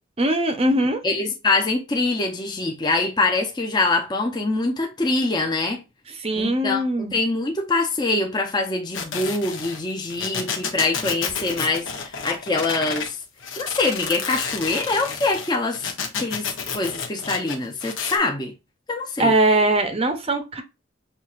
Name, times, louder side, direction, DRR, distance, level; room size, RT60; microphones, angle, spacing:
voice 1, 0.2-1.0 6.2-7.1 19.2-20.6, right 1 dB, 30° right, 0.6 m, -21 dB
voice 2, 1.0-5.8 6.4-13.2 13.6-15.9 16.2-18.5 18.9-19.3, left 3 dB, 20° left, 0.6 m, -24 dB
sound 1, 8.9-13.1 13.4-18.2, left 6 dB, 85° left, 1.0 m, -30 dB
5.7 x 2.8 x 2.4 m
head